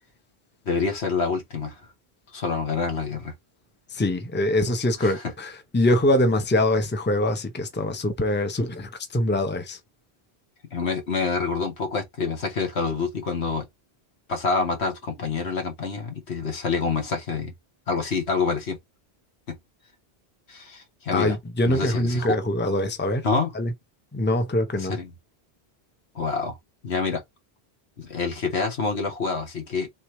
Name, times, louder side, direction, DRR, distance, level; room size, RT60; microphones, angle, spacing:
voice 1, 0.7-1.8 2.3-3.3 5.0-5.2 10.7-13.7 14.3-17.5 17.9-18.8 19.5-19.6 20.5-21.4 21.6-22.4 23.2-23.5 24.8-25.1 26.2-26.6 26.8-27.2 28.0-29.9, left 4 dB, 85° left, 1.7 m, -27 dB
voice 2, 3.9-9.8 21.1-23.3 23.5-23.7 24.1-25.0, left 1 dB, 10° left, 0.7 m, -24 dB
4.3 x 3.5 x 3.1 m
omnidirectional pair, 1.1 m